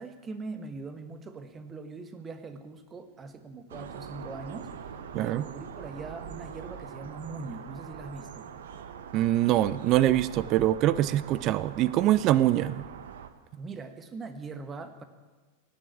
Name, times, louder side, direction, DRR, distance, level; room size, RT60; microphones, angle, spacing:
voice 1, 0.0-4.7 5.1-8.5 13.6-15.0, right 3 dB, 20° right, 9 dB, 1.4 m, -41 dB
sound 1, 3.7-13.3, right 8 dB, 60° right, 1.1 m, -43 dB
voice 2, 5.1-5.5 9.1-12.8, right 13 dB, 35° right, 18 dB, 0.4 m, -24 dB
17.5 x 7.8 x 8.5 m, 1.3 s
figure-of-eight pair, 90°, 0 cm